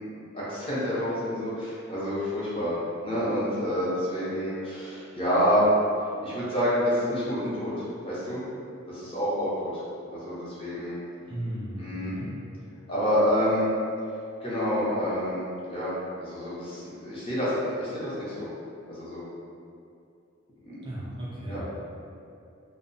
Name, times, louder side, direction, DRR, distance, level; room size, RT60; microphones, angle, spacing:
voice 1, 0.3-5.7 6.2-8.4 8.9-9.8 10.1-11.0 11.8-12.2 12.9-13.7 14.4-15.9 16.2-18.5 18.9-19.2 20.7-20.8 21.5-21.6, equal, 25° left, -9 dB, 0.7 m, -28 dB
voice 2, 11.3-12.3 20.8-21.6, right 1 dB, 25° right, -8 dB, 0.3 m, -35 dB
2.7 x 2.0 x 2.6 m, 2.6 s
head